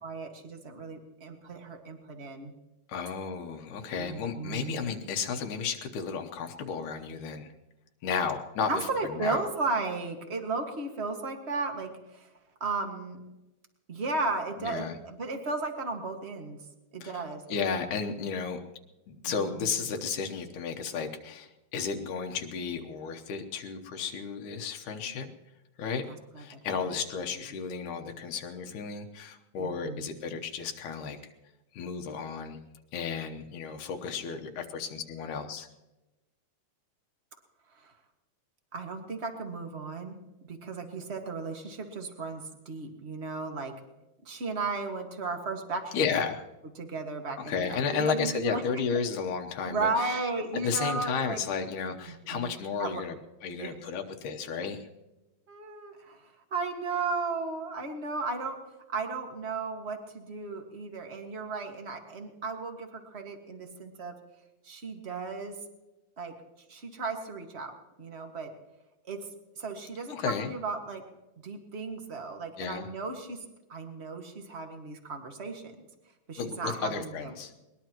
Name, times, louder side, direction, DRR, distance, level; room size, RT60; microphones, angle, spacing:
voice 1, 0.0-2.5 3.9-4.8 8.7-12.3 12.6-13.2 13.9-16.6 16.9-17.4 19.2-19.7 26.1-26.6 29.6-30.1 37.8-37.9 38.7-40.2 40.4-43.7 44.2-46.0 46.8-48.6 49.7-51.4 52.3-52.5 52.8-53.0 53.5-53.7 55.5-56.2 56.5-58.6 58.9-64.2 64.6-65.6 66.2-66.3 66.7-68.5 69.0-69.3 69.6-71.0 71.4-73.4 73.7-75.6 76.3-77.3, right 3 dB, 30° right, 4 dB, 1.3 m, -35 dB
voice 2, 2.9-7.5 8.0-9.4 14.6-15.0 17.0-17.1 17.5-18.6 19.1-25.3 25.8-26.0 26.4-31.2 31.7-32.6 32.9-35.7 45.9-46.4 47.4-50.2 50.5-53.2 53.4-54.9 70.1-70.5 72.6-72.9 76.4-77.5, left 6 dB, 85° left, 4 dB, 2.6 m, -33 dB
22.0 x 20.5 x 3.0 m, 1.0 s
omnidirectional pair, 3.5 m